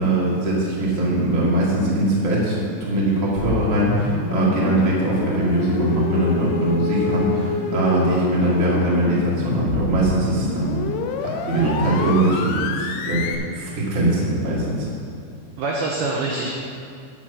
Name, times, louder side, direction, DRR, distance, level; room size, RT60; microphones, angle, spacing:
voice 1, 0.0-10.7 11.2-13.3 13.6-14.9, right 1 dB, 60° right, -6 dB, 0.8 m, -21 dB
sound 1, 3.4-13.4, left 5 dB, 85° left, 2.9 m, -28 dB
voice 2, 11.5-12.1 15.6-16.5, right 3 dB, 85° right, -2 dB, 2.1 m, -25 dB
9.8 x 6.3 x 6.1 m, 2.4 s
omnidirectional pair, 5.4 m